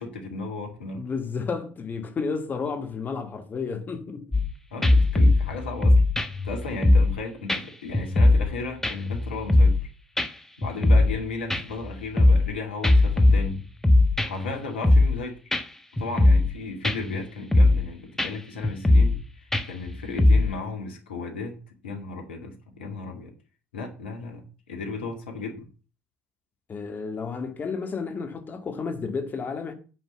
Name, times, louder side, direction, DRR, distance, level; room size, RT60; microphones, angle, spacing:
voice 1, 0.0-1.1 4.7-6.0 6.4-9.9 10.6-13.6 14.2-15.4 16.0-23.3 23.7-25.7, left 3 dB, 80° left, 2.2 m, -35 dB
voice 2, 1.0-4.3 26.7-29.7, left 5 dB, 35° left, 1.9 m, -31 dB
sound 1, 4.3-4.5 4.8-7.2 7.5-7.6 7.9-8.5 8.8-9.9 10.2-10.3 10.6-11.2 11.5-12.5 12.8-14.5 14.8-15.2 15.5-15.6 16.0-16.5 16.8-17.2 17.5-17.9 18.2-18.3 18.6-19.2 19.5-20.6, left 2 dB, 5° left, 1.3 m, -19 dB
9.8 x 5.4 x 7.0 m
figure-of-eight pair, 60°, 6 cm